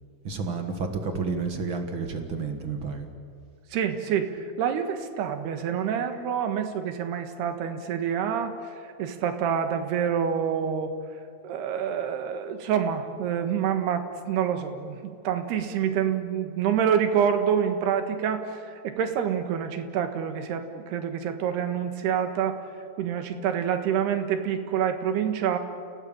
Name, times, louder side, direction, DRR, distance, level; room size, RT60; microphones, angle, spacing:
voice 1, 0.2-3.1, right 4 dB, 45° right, 5 dB, 1.7 m, -30 dB
voice 2, 3.7-10.9 11.4-22.6 23.0-25.6, right 8 dB, 85° right, 7 dB, 3.6 m, -27 dB
30.0 x 17.5 x 8.8 m, 2.3 s
omnidirectional pair, 4.5 m